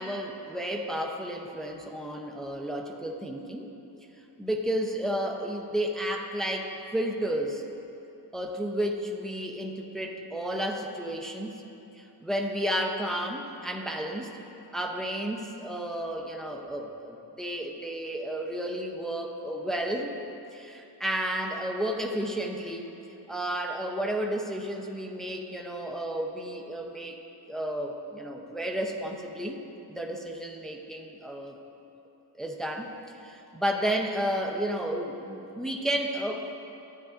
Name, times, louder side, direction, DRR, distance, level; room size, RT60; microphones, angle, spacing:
voice 1, 0.0-3.7 4.4-7.6 8.3-11.6 11.9-14.3 14.7-20.1 20.5-23.0 23.3-27.2 27.5-29.6 29.9-31.6 32.3-32.9 33.2-36.5, right 1 dB, ahead, 2 dB, 0.6 m, -32 dB
13.0 x 8.9 x 2.5 m, 3.0 s
wide cardioid pair, 100°, 43 cm